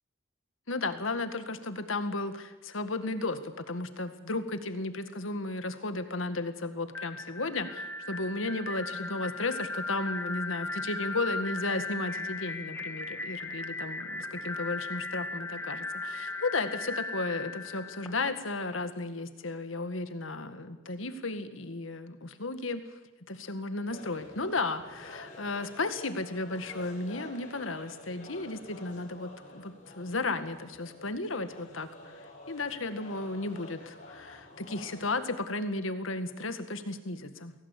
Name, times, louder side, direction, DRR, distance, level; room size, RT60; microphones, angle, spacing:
voice 1, 0.7-22.8 23.3-32.2 32.5-37.5, left 3 dB, 85° left, 9 dB, 1.9 m, -34 dB
sound 1, 6.9-18.7, left 2 dB, 10° left, 1.9 m, -37 dB
sound 2, 23.8-35.1, left 1 dB, 40° left, 5.8 m, -49 dB
23.0 x 17.0 x 8.4 m, 1.1 s
head